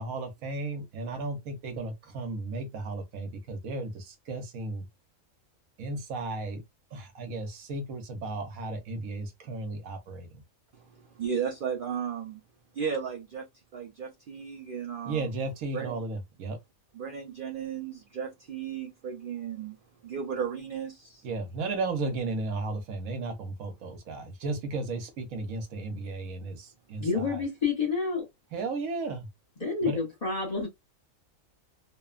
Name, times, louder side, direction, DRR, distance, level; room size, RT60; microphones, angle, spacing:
voice 1, 0.0-4.9 5.8-6.6 6.9-10.3 15.0-16.6 21.2-27.4 28.5-29.3 29.8-30.0, right 3 dB, 85° right, 1.2 m, -34 dB
voice 2, 10.7-12.4 12.7-15.4 15.7-16.0 16.9-19.8 20.0-21.2, right 7 dB, 60° right, 0.5 m, -35 dB
voice 3, 27.0-28.3 29.6-30.7, left 5 dB, 35° left, 0.9 m, -29 dB
3.0 x 2.2 x 2.3 m
omnidirectional pair, 1.4 m